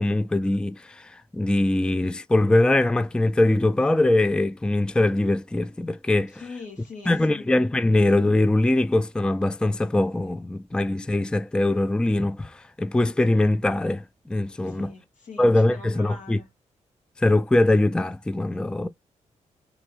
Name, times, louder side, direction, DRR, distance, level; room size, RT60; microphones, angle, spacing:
voice 1, 0.0-6.4 7.1-14.9 15.4-16.4 17.2-18.9, left 2 dB, 5° left, 0.4 m, -22 dB
voice 2, 6.3-7.5 14.6-16.5, left 4 dB, 80° left, 1.6 m, -42 dB
3.8 x 2.7 x 4.6 m
cardioid pair, 70°, 12 cm